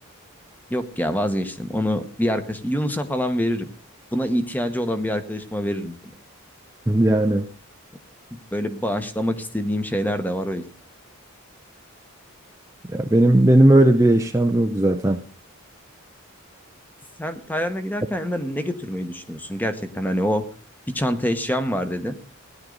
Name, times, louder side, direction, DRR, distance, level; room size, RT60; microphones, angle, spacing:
voice 1, 0.7-3.7 4.1-6.0 8.3-10.6 17.2-20.5 20.9-22.1, equal, 10° left, 9 dB, 1.1 m, -25 dB
voice 2, 6.9-7.5 12.9-15.2, right 1 dB, 15° right, 5 dB, 0.6 m, -17 dB
17.0 x 11.0 x 3.9 m, 0.40 s
head